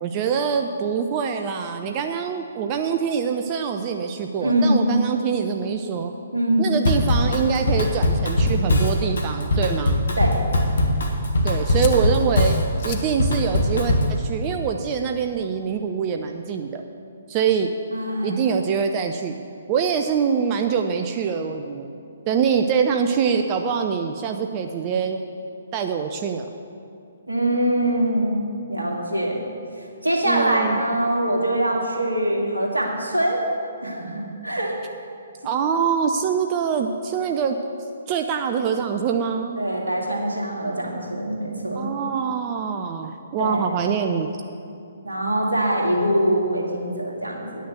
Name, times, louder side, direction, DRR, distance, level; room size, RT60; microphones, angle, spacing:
voice 1, 0.0-6.1 6.6-10.0 11.4-12.6 12.8-16.8 17.3-17.7 18.2-19.4 19.7-21.9 22.3-25.2 25.7-26.5 30.3-30.8 35.4-37.6 38.1-39.6 41.8-44.3, right 6 dB, 30° right, 5 dB, 0.5 m, -24 dB
voice 2, 4.4-4.9 6.3-6.8 10.2-10.3 17.9-18.4 27.3-29.4 29.8-33.4 33.8-34.8 39.6-41.9 43.4-43.7 45.0-47.7, right 1 dB, 80° right, -1 dB, 2.1 m, -23 dB
Drum kit / Drum, 6.8-14.2, left 1 dB, 60° left, 1.6 m, -21 dB
sound 1, 10.5-15.5, left 7 dB, 40° left, 0.8 m, -36 dB
9.6 x 6.5 x 7.9 m, 2.6 s
figure-of-eight pair, 130°, 0 cm